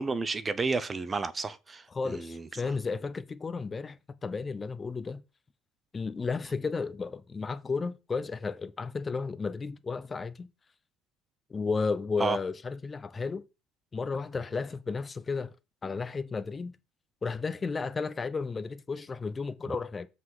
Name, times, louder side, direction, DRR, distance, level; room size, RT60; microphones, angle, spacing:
voice 1, 0.0-2.5 12.2-12.4, right 4 dB, 25° right, 0.6 m, -31 dB
voice 2, 1.9-5.2 5.9-10.5 11.5-13.4 13.9-15.5 15.8-16.7 17.2-20.1, left 4 dB, 25° left, 0.7 m, -33 dB
7.7 x 4.0 x 4.8 m
cardioid pair, 110°, 0 cm